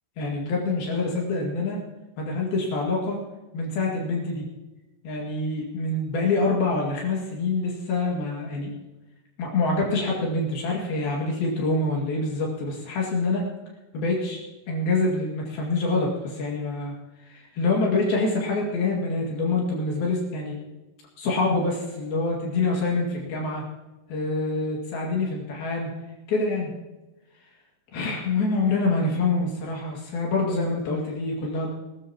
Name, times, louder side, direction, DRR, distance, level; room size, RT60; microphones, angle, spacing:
voice 1, 0.2-1.8 2.2-3.2 3.5-4.4 5.0-8.7 9.4-13.4 13.9-14.4 14.7-16.9 17.2-20.6 21.2-23.6 24.1-25.9 26.3-26.7 27.9-31.7, left 3 dB, 65° left, -2 dB, 3.9 m, -26 dB
20.5 x 13.5 x 2.9 m, 1.1 s
omnidirectional pair, 4.7 m